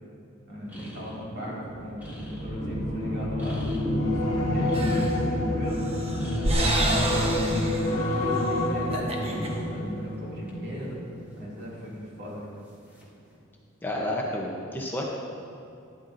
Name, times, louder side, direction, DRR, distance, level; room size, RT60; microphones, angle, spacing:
voice 1, 0.5-3.7 4.3-5.8 6.6-11.0 11.4-12.5, equal, 55° right, -5 dB, 2.4 m, -38 dB
sound 1, 0.6-6.9 7.3-8.3 8.6-12.1 12.9-13.2, equal, 10° right, 1.8 m, -41 dB
sound 2, 2.0-11.3 11.7-12.0, left 1 dB, 75° left, 1.6 m, -28 dB
sound 3, 4.7-5.2 5.7-7.9 8.3-8.5 8.8-9.5, right 1 dB, 30° right, 1.0 m, -28 dB
voice 2, 13.8-15.0, left 1 dB, 10° left, -2 dB, 0.8 m, -30 dB
12.5 x 10.5 x 2.6 m, 2.5 s
head